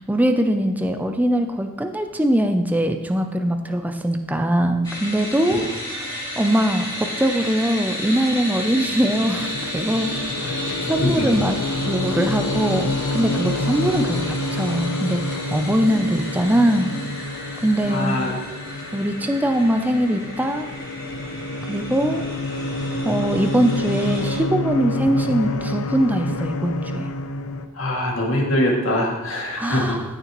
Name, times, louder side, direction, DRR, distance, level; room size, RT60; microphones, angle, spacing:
voice 1, 0.1-5.6 6.1-10.1 10.4-10.6 10.9-11.6 11.8-16.9 17.6-18.2 18.9-20.7 21.7-22.2 23.0-27.0 29.6-30.0, equal, 5° right, 6 dB, 0.4 m, -22 dB
sound 1, 4.8-24.4, left 1 dB, 20° left, 2.9 m, -33 dB
sound 2, 8.2-27.7, left 1 dB, 85° left, 0.6 m, -28 dB
voice 2, 10.6-11.4 17.9-18.3 27.7-30.0, left 1 dB, 70° left, -2 dB, 2.2 m, -23 dB
15.0 x 6.7 x 3.0 m, 1.1 s
head